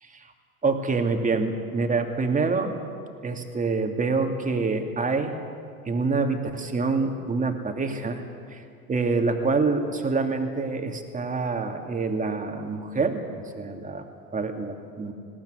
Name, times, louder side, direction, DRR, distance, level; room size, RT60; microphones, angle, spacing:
voice 1, 0.6-2.8 3.2-5.4 5.9-8.2 8.5-8.6 8.9-13.2 13.5-15.1, right 4 dB, 15° right, 5 dB, 2.6 m, -26 dB
20.0 x 18.0 x 9.5 m, 2.4 s
hypercardioid pair, 80°, 44 cm